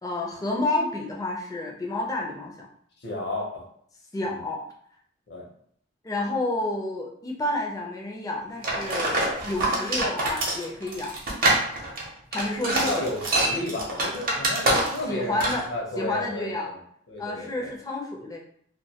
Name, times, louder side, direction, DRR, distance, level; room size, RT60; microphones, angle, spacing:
voice 1, 0.0-2.7 4.1-4.6 6.0-11.2 12.3-13.0 15.1-15.7 16.0-16.7 17.2-18.4, left 2 dB, 20° left, -1 dB, 0.4 m, -30 dB
voice 2, 3.0-3.6 4.2-4.4 5.3-5.5 12.6-16.8 17.1-17.8, left 1 dB, 60° left, -1 dB, 0.7 m, -32 dB
sound 1, 8.6-15.1 15.4-15.7, right 2 dB, 45° right, 0.6 m, -25 dB
2.2 x 2.1 x 2.7 m, 0.65 s
head